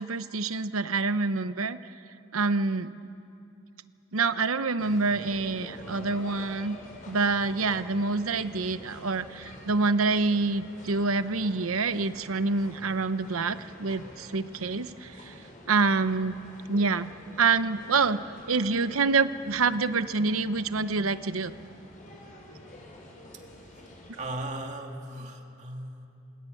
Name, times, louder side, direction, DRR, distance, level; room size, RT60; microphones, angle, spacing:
voice 1, 0.0-1.8 2.3-3.0 4.1-6.8 7.1-15.4 15.7-16.4 16.7-17.1 17.4-18.2 18.5-21.5, right 4 dB, 85° right, 12 dB, 0.9 m, -26 dB
sound 1, 4.8-24.3, left 1 dB, 40° left, 5.3 m, -48 dB
voice 2, 23.3-26.1, right 1 dB, 35° right, 3 dB, 2.4 m, -38 dB
28.5 x 20.0 x 9.3 m, 2.7 s
head